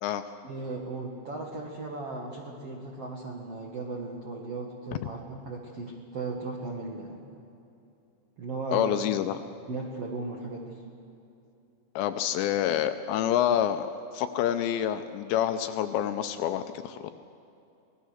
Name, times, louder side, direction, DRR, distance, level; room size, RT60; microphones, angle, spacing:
voice 1, 0.4-7.2 8.4-9.0 9.7-10.8, right 3 dB, 70° right, -1 dB, 1.4 m, -36 dB
voice 2, 8.7-9.4 12.0-13.9 14.1-17.1, left 10 dB, 80° left, 9 dB, 2.7 m, -27 dB
25.5 x 18.5 x 6.5 m, 2.7 s
omnidirectional pair, 5.5 m